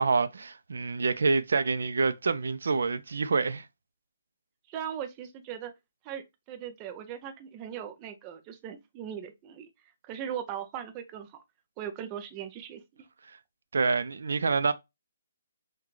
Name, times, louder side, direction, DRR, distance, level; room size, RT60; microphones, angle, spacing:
voice 1, 0.0-3.7 13.7-14.7, right 4 dB, 75° right, 0.4 m, -27 dB
voice 2, 4.7-5.7 6.0-9.7 10.0-11.4 11.8-13.1, right 9 dB, 15° right, 0.4 m, -39 dB
5.9 x 2.2 x 3.1 m
hypercardioid pair, 175°, 0 cm